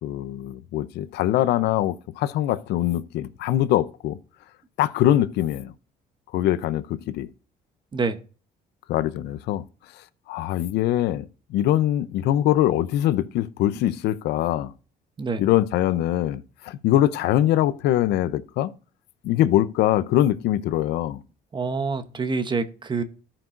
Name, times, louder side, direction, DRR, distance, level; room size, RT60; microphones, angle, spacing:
voice 1, 0.0-4.2 4.8-5.7 6.3-7.3 8.9-9.6 10.3-11.2 11.5-14.7 15.4-18.7 19.2-21.2, left 13 dB, 80° left, 0.6 m, -23 dB
voice 2, 21.5-23.0, right 4 dB, 25° right, 0.9 m, -26 dB
14.0 x 6.0 x 2.5 m
cardioid pair, 110°, 17 cm